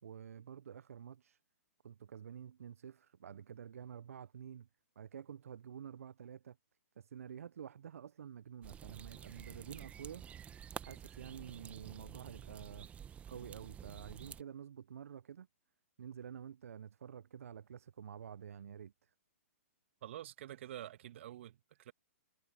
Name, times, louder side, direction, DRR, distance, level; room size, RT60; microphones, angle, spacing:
voice 1, 0.0-1.4 1.8-4.7 5.0-6.6 7.0-10.2 10.8-12.9 13.3-15.5 16.0-19.1, right 8 dB, 70° right, 0.6 m, -49 dB
sound 1, 8.6-14.4, right 8 dB, 15° right, 1.1 m, -50 dB
voice 2, 20.0-21.9, right 12 dB, 55° right, 1.6 m, -48 dB
hypercardioid pair, 125°, 8 cm